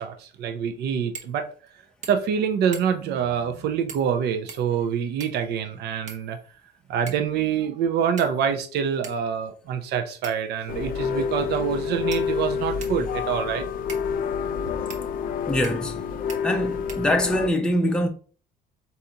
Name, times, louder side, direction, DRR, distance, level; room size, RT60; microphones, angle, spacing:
voice 1, 0.0-1.7 2.1-6.4 6.9-13.7 14.6-14.8, right 7 dB, 75° right, 0.7 m, -26 dB
sound 1, 1.1-1.4 1.7-1.8 2.0-2.4 2.7-3.1 3.9-4.1 4.5-5.5 6.1-6.6 7.1-7.3 8.2-8.6 9.0-9.2 10.2-10.6 11.4-11.5 12.1-13.0 13.9-14.1 14.9-15.0 15.6-16.0 16.3-16.4 16.9-17.4, right 5 dB, 45° right, 0.9 m, -42 dB
sound 2, 10.7-17.5, left 6 dB, 55° left, 0.4 m, -28 dB
voice 2, 15.5-16.0 16.4-18.1, equal, 5° left, 0.6 m, -23 dB
4.1 x 3.7 x 2.8 m
cardioid pair, 110°, 17 cm